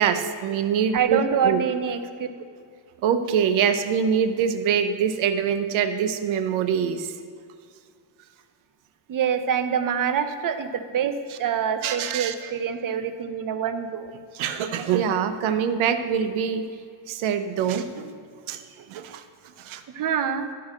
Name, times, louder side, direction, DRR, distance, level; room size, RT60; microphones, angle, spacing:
voice 1, 0.0-1.6 3.0-7.1 11.3-11.4 11.8-12.5 14.3-16.6 17.1-18.1 18.5-19.2 19.6-19.8, right 7 dB, 90° right, 9 dB, 0.8 m, -24 dB
voice 2, 0.9-2.3 9.1-14.1 19.9-20.5, right 7 dB, 45° right, 9 dB, 0.7 m, -26 dB
12.5 x 4.7 x 6.2 m, 2.2 s
cardioid pair, 125°, 46 cm